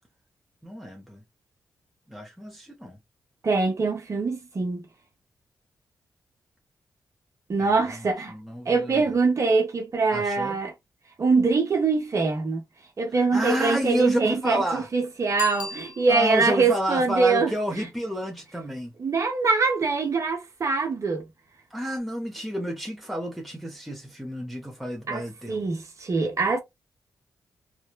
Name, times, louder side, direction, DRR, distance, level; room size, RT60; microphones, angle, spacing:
voice 1, 0.6-1.2 2.1-3.0 7.6-9.0 10.1-10.6 13.3-14.9 16.1-18.9 21.7-25.7, equal, ahead, 0.7 m, -30 dB
voice 2, 3.4-4.9 7.5-8.3 8.6-10.7 11.2-12.6 13.0-17.5 19.0-21.2 25.1-25.2 25.5-26.6, right 4 dB, 50° right, 1.1 m, -23 dB
Bicycle bell, 15.3-16.5 22.0-22.1, left 6 dB, 85° left, 0.6 m, -37 dB
3.2 x 2.2 x 2.3 m
cardioid pair, 70°, 7 cm